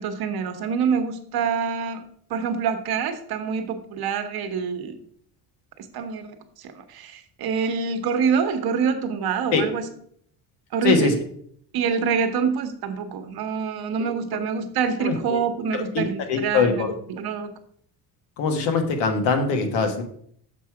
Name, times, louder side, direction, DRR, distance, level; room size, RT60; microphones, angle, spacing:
voice 1, 0.0-2.0 2.3-5.0 5.9-9.9 10.7-11.1 11.7-17.5, right 6 dB, 60° right, 7 dB, 1.0 m, -26 dB
voice 2, 10.8-11.1 14.0-14.1 15.0-15.4 15.7-16.9 18.4-20.0, left 4 dB, 90° left, 5 dB, 1.4 m, -23 dB
6.9 x 4.7 x 4.7 m, 0.64 s
cardioid pair, 130°, 43 cm